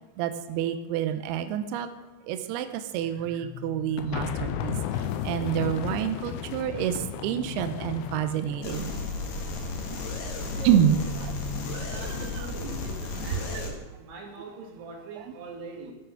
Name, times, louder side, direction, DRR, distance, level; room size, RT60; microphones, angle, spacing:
voice 1, 0.2-1.9 2.3-4.7 5.2-8.9 10.6-10.9 11.7-12.0, right 10 dB, 85° right, 9 dB, 2.3 m, -27 dB
sound 1, 3.0-5.0 6.7-8.6 10.4-12.3, left 2 dB, 50° left, 2.7 m, -42 dB
sound 2, 4.0-9.0, left 9 dB, 90° left, 2.2 m, -34 dB
sound 3, 8.6-13.7, left 3 dB, 65° left, 3.7 m, -34 dB
voice 2, 10.5-11.0 11.9-15.9, right 3 dB, 65° right, 0 dB, 4.2 m, -42 dB
16.0 x 7.0 x 6.0 m, 1.1 s
omnidirectional pair, 5.3 m